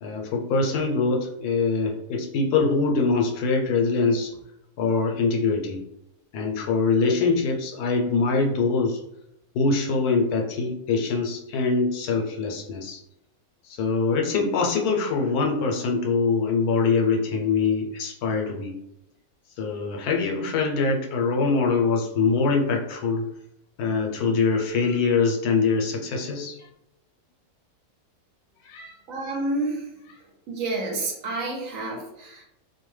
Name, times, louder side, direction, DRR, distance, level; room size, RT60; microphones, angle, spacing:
voice 1, 0.0-4.3 4.8-5.8 6.3-9.0 9.5-13.0 13.7-18.7 19.6-23.2 23.8-26.6 28.6-28.9, left 4 dB, 80° left, 1 dB, 1.1 m, -23 dB
voice 2, 29.1-29.8 30.5-32.4, right 2 dB, 70° right, 0 dB, 1.0 m, -29 dB
2.6 x 2.2 x 3.1 m, 0.80 s
omnidirectional pair, 1.6 m